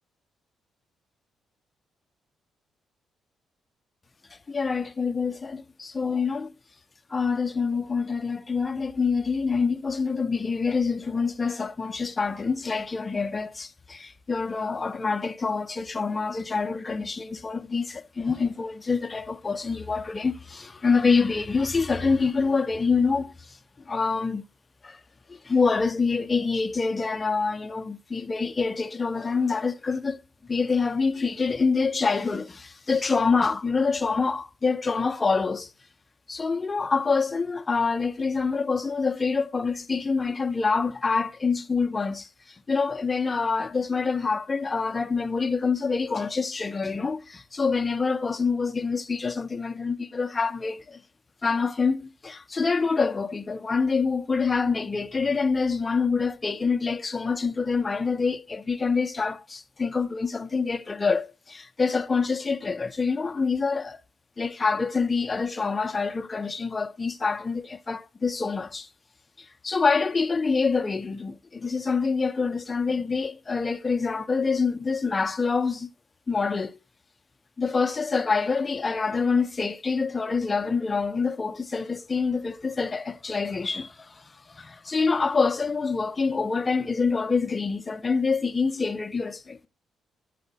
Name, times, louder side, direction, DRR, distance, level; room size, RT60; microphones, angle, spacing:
voice 1, 4.3-6.5 7.1-23.6 23.9-24.4 24.8-25.0 25.3-30.2 30.5-35.7 36.3-51.0 51.4-64.0 64.4-68.9 69.4-75.9 76.3-76.8 77.6-89.7, left 4 dB, 25° left, 0.5 m, -26 dB
8.0 x 4.1 x 3.9 m
cardioid pair, 90°, 0 cm